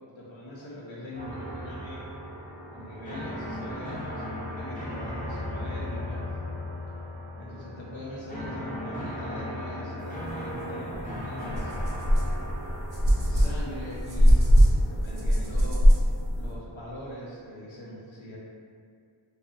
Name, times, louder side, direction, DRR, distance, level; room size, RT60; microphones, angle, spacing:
voice 1, 0.2-2.0 2.7-6.3 7.4-11.8 13.2-14.4 14.9-15.9 16.3-18.4, equal, 80° left, -5 dB, 0.7 m, -41 dB
sound 1, 1.1-17.1, left 1 dB, 20° left, 0.6 m, -37 dB
sound 2, 10.9-11.0 11.5-16.5, equal, 45° right, 0.5 m, -22 dB
2.4 x 2.0 x 2.7 m, 2.2 s
wide cardioid pair, 70°, 46 cm